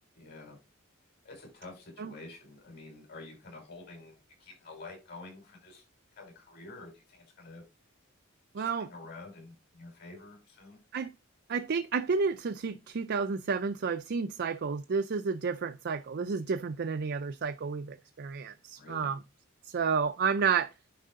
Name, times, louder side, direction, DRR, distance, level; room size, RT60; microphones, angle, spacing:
voice 1, 0.1-0.6 1.2-5.8 6.1-7.6 8.6-10.8 18.8-19.1, left 3 dB, 50° left, 5.1 m, -48 dB
voice 2, 8.5-8.9 10.9-11.1 11.5-19.2 19.7-20.7, right 5 dB, 50° right, 0.5 m, -31 dB
10.0 x 4.8 x 3.7 m
head